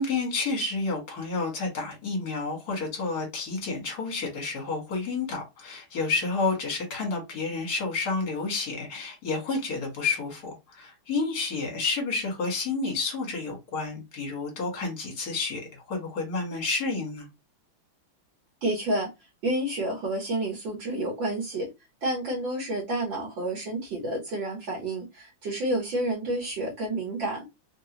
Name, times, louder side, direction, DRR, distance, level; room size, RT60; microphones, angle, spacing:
voice 1, 0.0-17.3, left 3 dB, 50° left, 1.8 m, -30 dB
voice 2, 18.6-19.1 19.4-21.7 22.0-27.5, right 1 dB, 65° right, 1.7 m, -29 dB
3.8 x 2.2 x 2.9 m
omnidirectional pair, 2.4 m